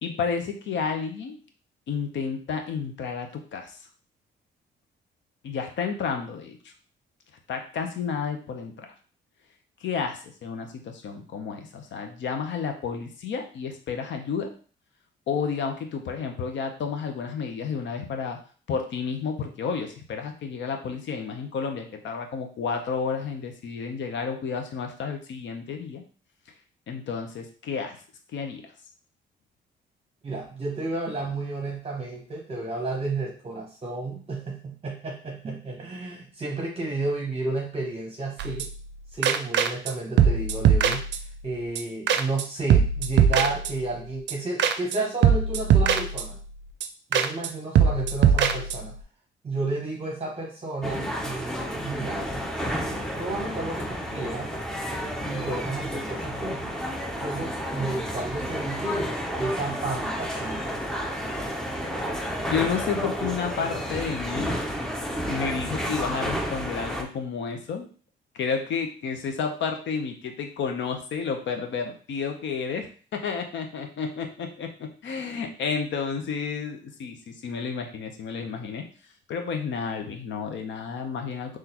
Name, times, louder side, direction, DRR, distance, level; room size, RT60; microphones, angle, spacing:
voice 1, 0.0-1.4 1.9-3.8 5.4-6.7 7.5-8.9 9.8-14.5 15.3-18.4 18.7-26.0 26.9-28.0 28.3-28.6 62.5-64.6 65.3-67.9 68.3-78.9 79.3-81.6, left 6 dB, 65° left, 5 dB, 0.8 m, -31 dB
voice 2, 30.2-38.7 39.1-41.1 41.4-46.4 47.1-48.9 49.4-52.2 53.2-54.5 55.2-56.7 57.2-59.1 59.4-60.6, right 2 dB, 30° right, -1 dB, 0.9 m, -32 dB
sound 1, 38.4-38.9 39.2-39.9 40.2-41.5 41.8-41.9 42.1-42.4 42.7-44.0 44.3-44.4 44.6-45.0 45.2-46.5 46.8-46.9 47.1-47.5 47.8-49.0, right 7 dB, 65° right, 0.5 m, -21 dB
sound 2, 50.8-67.0, equal, 5° left, 0.7 m, -31 dB
3.8 x 3.2 x 2.9 m, 0.41 s
cardioid pair, 90°, 20 cm